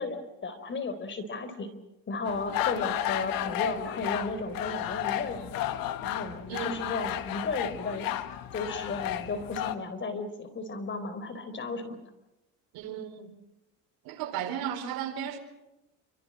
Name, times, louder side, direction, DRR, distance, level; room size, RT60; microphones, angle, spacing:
voice 1, 0.0-1.7 2.1-5.6 6.0-8.1 8.5-12.0, left 3 dB, 30° left, 11 dB, 4.1 m, -34 dB
sound 1, 2.2-9.7, left 12 dB, 70° left, 1.8 m, -33 dB
voice 2, 6.5-6.8 12.7-13.4 14.0-15.4, right 9 dB, 80° right, 6 dB, 4.5 m, -35 dB
28.0 x 25.0 x 6.4 m, 0.95 s
cardioid pair, 130°, 35 cm